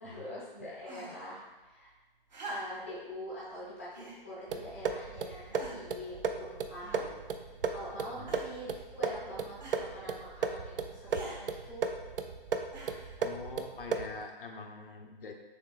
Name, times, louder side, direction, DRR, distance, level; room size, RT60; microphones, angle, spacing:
voice 1, 0.0-1.4 1.7-1.9 2.4-7.0 7.4-11.8, equal, 15° left, -9 dB, 0.5 m, -44 dB
sound 1, 0.8-1.3 2.3-3.0 3.9-4.2 5.0-5.1 5.5-6.0 6.8-7.4 8.3-8.7 9.6-9.9 11.1-11.4 12.7-13.2 14.2-14.3, right 1 dB, 45° right, 0.9 m, -45 dB
sound 2, 4.5-14.2, right 5 dB, 70° right, 0.4 m, -36 dB
voice 2, 8.0-8.4 13.2-15.4, left 4 dB, 65° left, 3 dB, 0.6 m, -45 dB
6.5 x 2.8 x 2.3 m, 1.2 s
hypercardioid pair, 165°, 30 cm